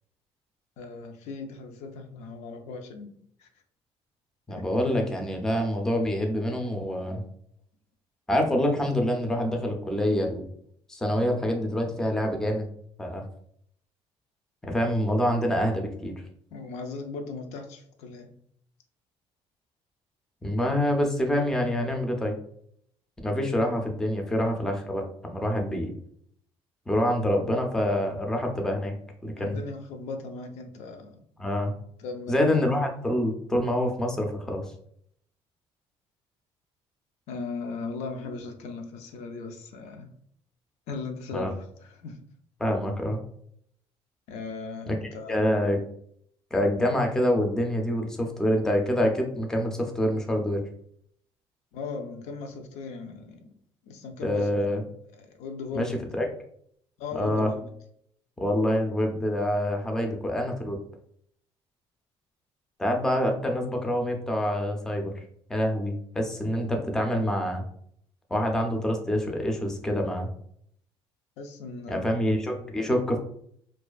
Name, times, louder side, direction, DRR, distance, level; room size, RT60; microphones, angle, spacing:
voice 1, 0.8-3.1 3.4-3.5 4.5-4.7 16.5-18.3 23.3-23.4 29.4-31.2 32.0-32.6 37.3-40.1 40.9-42.2 44.3-45.4 51.7-53.5 53.8-54.5 55.1-56.0 57.0-57.7 71.4-72.1, left 4 dB, 90° left, 5 dB, 0.4 m, -38 dB
voice 2, 4.5-7.2 8.3-10.4 10.9-12.7 13.0-13.2 14.6-16.1 20.4-22.3 23.2-25.9 26.9-28.9 29.2-29.6 31.4-31.7 32.3-34.6 41.3-41.5 42.6-43.2 44.9-45.0 45.3-45.8 46.5-50.6 54.2-54.8 55.7-55.9 56.1-56.3 57.1-57.5 58.4-60.8 62.8-65.1 65.5-67.6 68.3-70.3 71.9-73.2, equal, 5° left, 2 dB, 0.3 m, -26 dB
2.4 x 2.3 x 2.2 m, 0.66 s
cardioid pair, 145°, 11 cm